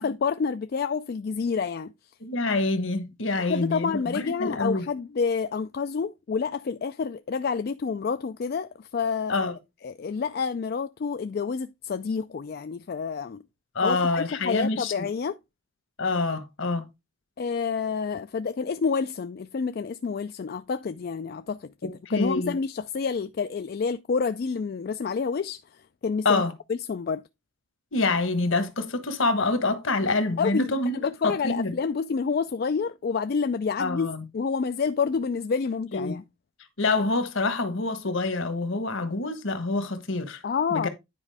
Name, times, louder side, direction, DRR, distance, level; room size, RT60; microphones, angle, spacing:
voice 1, 0.0-1.9 3.4-9.4 9.8-13.4 13.8-15.4 17.4-26.4 26.7-27.2 30.4-36.2 40.4-40.9, left 5 dB, 45° left, 0.3 m, -28 dB
voice 2, 2.2-4.8 9.3-9.6 13.7-15.1 16.0-16.9 21.8-22.6 26.2-26.5 27.9-31.7 33.8-34.2 35.9-36.2 36.8-40.4 40.7-40.9, left 3 dB, 65° left, 1.3 m, -26 dB
9.7 x 5.0 x 3.4 m
head